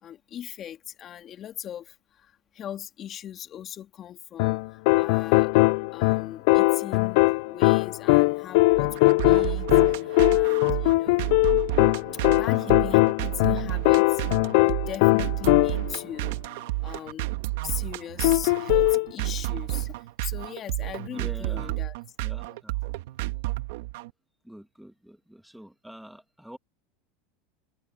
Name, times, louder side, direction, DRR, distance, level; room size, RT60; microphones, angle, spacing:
voice 1, 0.0-5.5 5.9-7.2 7.5-11.3 12.3-14.2 14.6-17.3 17.6-21.9, left 10 dB, 40° left, 2.5 m, -39 dB
sound 1, 4.4-16.0 18.2-19.1, left 25 dB, 65° left, 0.4 m, -21 dB
sound 2, 8.7-24.1, right 20 dB, 75° right, 1.7 m, -31 dB
voice 2, 21.1-21.7 22.2-22.8 24.4-26.6, equal, ahead, 2.6 m, -45 dB
supercardioid pair, 110°, 0 cm